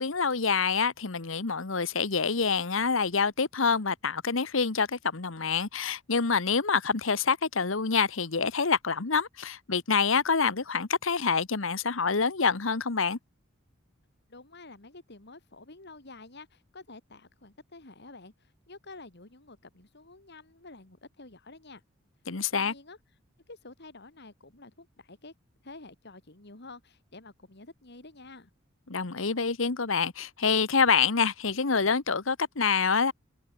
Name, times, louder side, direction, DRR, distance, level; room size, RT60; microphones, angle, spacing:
voice 1, 0.0-13.2 22.3-22.7 28.9-33.1, left 5 dB, 70° left, 1.2 m, -26 dB
voice 2, 14.3-21.8 22.5-23.0 23.5-25.3 25.6-28.5, left 3 dB, 55° left, 2.8 m, -49 dB
head